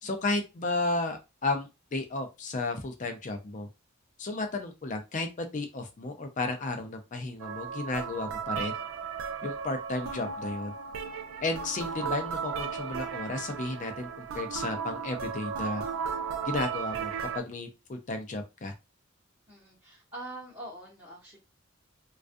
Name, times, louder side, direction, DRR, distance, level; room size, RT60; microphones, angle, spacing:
voice 1, 0.0-3.7 4.2-8.7 9.4-10.7 11.4-15.8 16.4-18.7, left 2 dB, 35° left, 6 dB, 0.4 m, -33 dB
sound 1, 7.4-17.4, right 6 dB, 75° right, 0.4 m, -35 dB
voice 2, 19.5-21.4, right 1 dB, 15° right, -7 dB, 0.8 m, -44 dB
2.3 x 2.3 x 2.5 m, 0.25 s
head